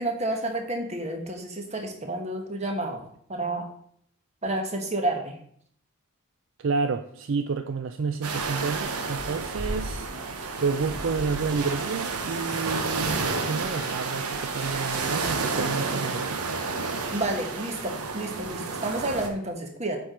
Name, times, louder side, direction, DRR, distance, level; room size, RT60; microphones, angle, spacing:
voice 1, 0.0-3.0 3.3-3.7 4.4-5.3 17.1-20.0, right 2 dB, 30° right, 3 dB, 1.2 m, -30 dB
voice 2, 6.6-10.1 10.6-16.4, right 4 dB, 55° right, 8 dB, 0.4 m, -30 dB
sound 1, 8.2-19.3, right 4 dB, 90° right, 1.0 m, -30 dB
7.4 x 4.6 x 5.1 m, 0.65 s
head